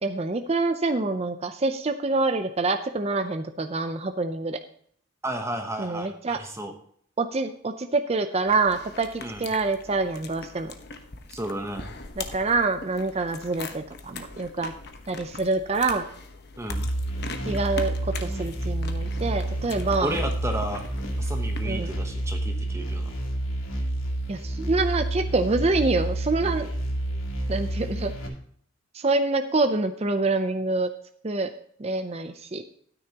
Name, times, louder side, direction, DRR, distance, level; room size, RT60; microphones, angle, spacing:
voice 1, 0.0-4.6 5.8-6.4 7.2-10.7 12.2-14.7 15.1-16.0 17.5-20.1 21.6-21.9 24.3-26.7 27.5-28.1 28.9-30.9 31.2-31.5 31.8-32.6, right 3 dB, 30° right, 7 dB, 0.6 m, -26 dB
voice 2, 5.2-6.7 9.2-9.4 11.3-11.9 16.6-16.9 20.0-20.9 21.2-23.1, right 1 dB, 15° right, 5 dB, 1.0 m, -33 dB
sound 1, 8.5-21.7, left 4 dB, 55° left, 1.1 m, -41 dB
sound 2, 16.7-28.3, right 1 dB, 80° left, 2.2 m, -29 dB
12.5 x 9.7 x 2.9 m, 0.64 s
head